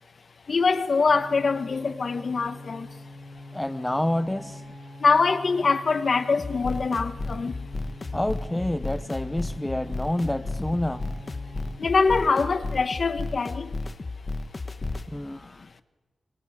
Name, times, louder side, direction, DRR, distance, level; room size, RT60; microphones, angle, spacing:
voice 1, 0.5-2.9 5.0-7.5 11.8-13.7, left 4 dB, 55° left, 1.4 m, -23 dB
sound 1, 1.1-11.7, left 2 dB, 80° right, 6.5 m, -44 dB
voice 2, 3.5-4.5 8.1-11.0 15.1-15.5, left 1 dB, 10° left, 0.8 m, -28 dB
sound 2, 6.4-15.1, left 2 dB, 35° left, 1.6 m, -33 dB
28.5 x 24.5 x 6.6 m
wide cardioid pair, 105°, 0 cm